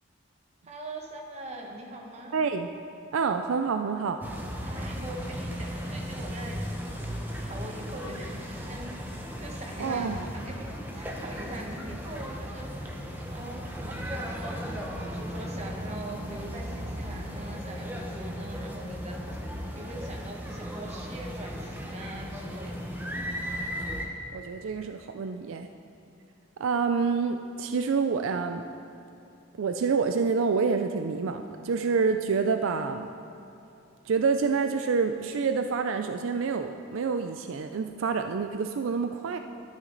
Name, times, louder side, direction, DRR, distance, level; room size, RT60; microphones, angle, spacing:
voice 1, 0.6-2.3 4.6-6.7 7.3-12.9 13.3-19.2 19.7-22.9, right 1 dB, 35° right, 0 dB, 1.3 m, -42 dB
voice 2, 2.3-2.7 3.1-4.2 9.8-10.2 24.3-25.7 26.6-28.6 29.6-33.1 34.1-39.4, right 5 dB, 80° right, 7 dB, 0.4 m, -27 dB
sound 1, 4.2-24.1, equal, 10° right, 0.9 m, -36 dB
12.5 x 9.2 x 3.9 m, 2.9 s
head